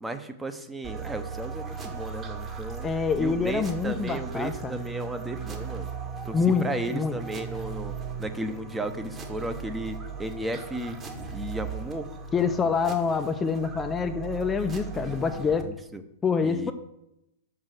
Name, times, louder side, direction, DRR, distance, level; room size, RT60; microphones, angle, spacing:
voice 1, 0.0-2.9 3.2-5.9 6.2-11.0 11.3-12.1 15.0-16.0 16.4-16.7, right 1 dB, 10° right, 8 dB, 0.8 m, -35 dB
sound 1, 0.8-15.6, right 6 dB, 25° right, 1.4 m, -37 dB
voice 2, 2.8-4.8 6.3-7.2 12.3-15.7 16.2-16.7, left 5 dB, 20° left, 7 dB, 0.5 m, -26 dB
6.4 x 6.1 x 6.4 m, 0.85 s
figure-of-eight pair, 100°, 0 cm